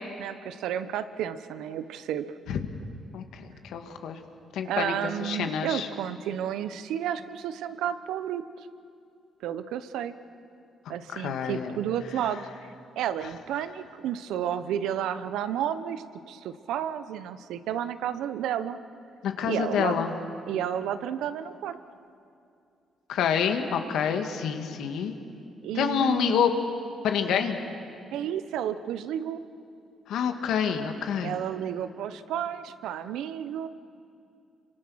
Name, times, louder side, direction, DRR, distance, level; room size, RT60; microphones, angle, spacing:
voice 1, 0.2-2.3 4.6-8.4 9.4-10.1 10.9-12.5 13.0-18.8 19.4-20.0 20.5-21.8 25.6-26.5 27.4-27.5 28.1-29.4 31.2-33.7, right 10 dB, 85° right, 12 dB, 0.9 m, -31 dB
voice 2, 3.1-4.2 4.5-4.9 5.2-5.9 11.1-11.7 19.2-20.1 23.1-25.2 25.8-26.5 27.0-27.6 30.1-31.3, left 7 dB, 80° left, 6 dB, 1.9 m, -27 dB
27.5 x 25.0 x 6.4 m, 2.5 s
cardioid pair, 90°, 0 cm